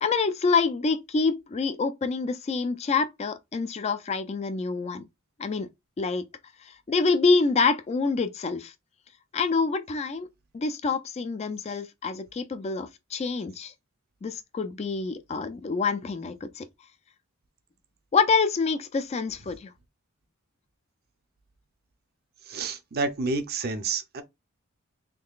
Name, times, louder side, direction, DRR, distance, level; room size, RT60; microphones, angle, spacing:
voice 1, 0.0-5.0 5.4-5.7 6.0-6.2 6.9-8.7 9.3-10.3 10.5-13.7 14.2-16.7 18.1-19.7, left 4 dB, 30° left, 0.3 m, -26 dB
voice 2, 22.5-24.2, right 3 dB, 45° right, 0.5 m, -29 dB
3.7 x 3.1 x 2.3 m
head